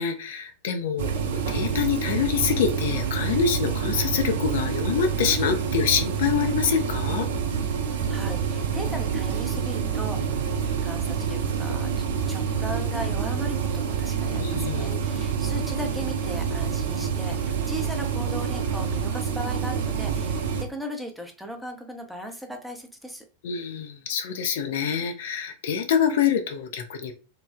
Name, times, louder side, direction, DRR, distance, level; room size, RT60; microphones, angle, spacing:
voice 1, 0.0-7.3 14.4-15.2 23.4-27.1, left 7 dB, 55° left, 6 dB, 0.3 m, -26 dB
sound 1, 1.0-20.6, right 7 dB, 55° right, 0.5 m, -27 dB
voice 2, 7.9-11.9 12.3-23.2, equal, ahead, 3 dB, 0.5 m, -37 dB
3.1 x 2.0 x 2.4 m, 0.35 s
figure-of-eight pair, 90°, 0 cm